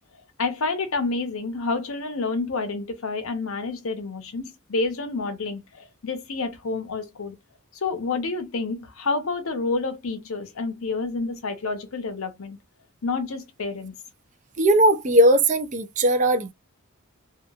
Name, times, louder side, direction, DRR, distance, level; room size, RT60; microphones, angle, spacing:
voice 1, 0.4-7.4 7.7-12.6 13.0-13.9, left 3 dB, 75° left, 0.8 m, -29 dB
voice 2, 14.6-16.5, right 1 dB, 35° right, 0.4 m, -18 dB
2.9 x 2.4 x 2.3 m
head